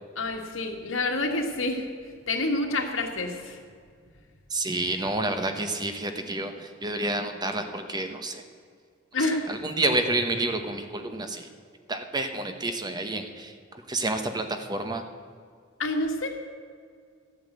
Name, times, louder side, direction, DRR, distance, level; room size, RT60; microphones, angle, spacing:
voice 1, 0.2-1.9 2.3-3.6 9.1-9.5 15.8-16.3, left 2 dB, 70° left, 3 dB, 1.8 m, -28 dB
voice 2, 4.5-8.4 9.5-11.5 11.9-13.5 13.9-15.0, right 2 dB, 20° right, 6 dB, 1.0 m, -29 dB
14.0 x 8.7 x 7.9 m, 2.1 s
head